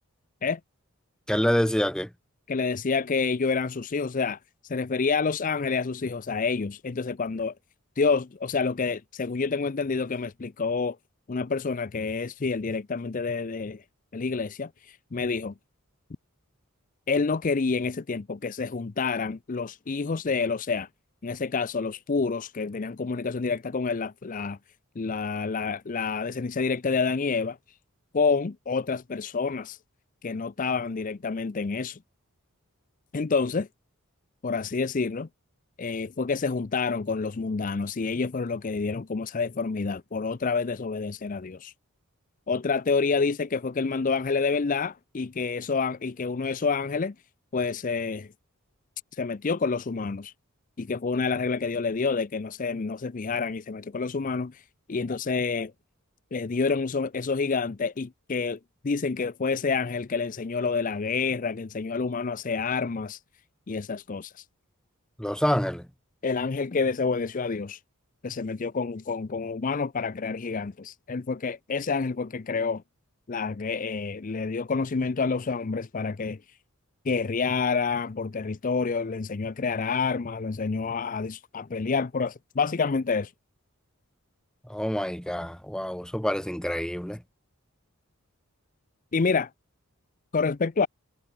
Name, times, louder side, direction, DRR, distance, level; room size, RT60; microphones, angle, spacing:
voice 1, 1.3-2.1 65.2-65.9 84.6-87.2, equal, 5° left, 1.3 m, -27 dB
voice 2, 2.5-7.5 8.0-11.0 11.3-13.8 14.1-15.5 17.1-20.9 21.2-24.6 25.0-27.6 28.1-29.8 30.2-32.0 33.1-33.7 34.4-35.3 35.8-41.7 42.5-47.1 47.5-48.3 49.1-50.3 50.8-54.6 54.9-55.7 56.3-63.2 63.7-64.4 66.2-67.8 68.2-72.8 73.3-76.4 77.1-83.3 89.1-89.5 90.3-90.9, left 4 dB, 35° left, 0.5 m, -28 dB
head